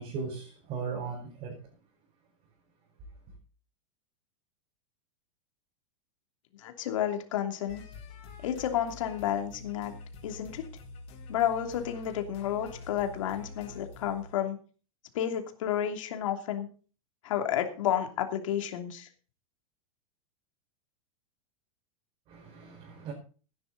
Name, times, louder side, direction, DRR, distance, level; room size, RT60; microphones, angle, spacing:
voice 1, 0.0-1.6 22.3-23.1, right 5 dB, 35° right, 5.1 m, -37 dB
voice 2, 6.6-7.8 8.4-9.9 10.2-10.6 11.3-14.6 15.1-16.7 17.2-19.1, left 10 dB, 70° left, 2.9 m, -31 dB
sound 1, 7.7-14.3, left 3 dB, 35° left, 4.9 m, -46 dB
15.5 x 11.0 x 4.1 m
supercardioid pair, 160°, 17 cm